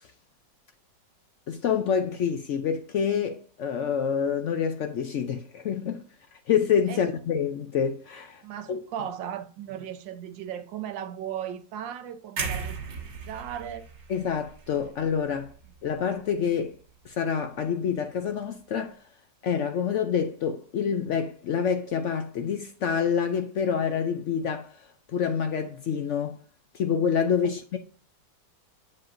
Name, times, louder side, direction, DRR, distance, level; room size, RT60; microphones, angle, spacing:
voice 1, 1.5-6.0 6.5-8.4 8.7-8.8 14.1-15.5 15.8-16.7 17.0-19.0 19.4-26.4 26.7-27.8, left 7 dB, 80° left, 0.6 m, -27 dB
voice 2, 8.4-13.8 27.4-27.5, right 9 dB, 85° right, 1.4 m, -37 dB
sound 1, 12.4-16.4 16.7-17.0, right 5 dB, 70° right, 2.2 m, -37 dB
7.6 x 7.4 x 2.5 m
omnidirectional pair, 2.0 m